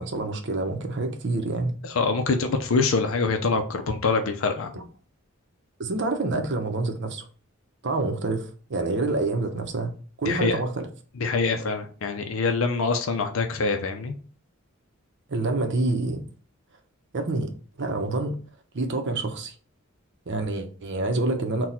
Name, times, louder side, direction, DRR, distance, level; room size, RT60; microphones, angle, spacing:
voice 1, 0.0-1.8 4.7-4.8 5.8-7.3 7.8-9.9 10.2-10.9 15.3-16.2 17.1-17.5 17.8-18.4 18.7-19.5 20.3-21.7, right 2 dB, 60° right, 0.7 m, -27 dB
voice 2, 1.8-4.7 10.2-10.6 11.2-14.1, left 4 dB, 70° left, 0.5 m, -25 dB
4.0 x 2.2 x 4.3 m
head